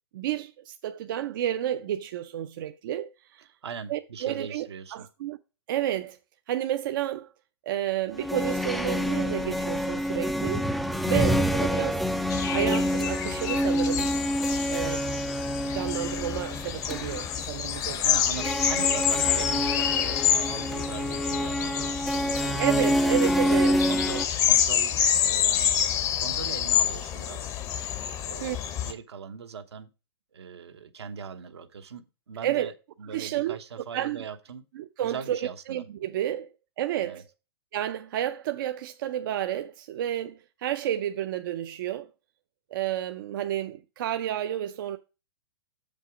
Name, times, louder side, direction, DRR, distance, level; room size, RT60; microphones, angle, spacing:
voice 1, 0.1-3.5 3.9-4.7 4.9-5.4 5.7-6.2 6.5-7.3 7.7-10.7 11.0-12.1 12.5-14.1 14.7-15.2 15.6-18.0 22.6-23.8 28.4-28.6 32.4-32.7 33.1-33.6 33.9-34.2 34.7-36.5 36.8-37.2 37.7-42.1 42.7-45.0, right 12 dB, 50° right, 0.5 m, -31 dB
voice 2, 3.6-5.1 11.1-11.3 17.9-23.2 23.6-25.7 26.2-27.5 28.2-29.9 30.3-32.7 33.0-34.6 35.0-35.8 37.0-37.2, right 6 dB, 80° right, 1.2 m, -40 dB
sound 1, 8.1-24.2, equal, ahead, 0.4 m, -27 dB
sound 2, 12.3-28.9, left 9 dB, 25° left, 0.7 m, -28 dB
6.8 x 5.3 x 4.8 m
hypercardioid pair, 140°, 14 cm